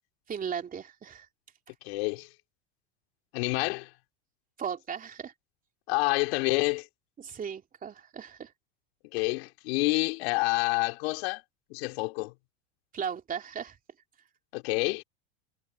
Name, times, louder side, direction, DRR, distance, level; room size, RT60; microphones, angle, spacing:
voice 1, 0.3-1.3 4.6-5.3 7.2-8.5 12.9-13.8, right 7 dB, 25° right, 3.0 m, -36 dB
voice 2, 1.8-2.3 3.3-3.9 5.9-6.9 9.1-11.4 11.7-12.3 14.5-15.0, left 25 dB, 70° left, 2.9 m, -28 dB
supercardioid pair, 115°, 32 cm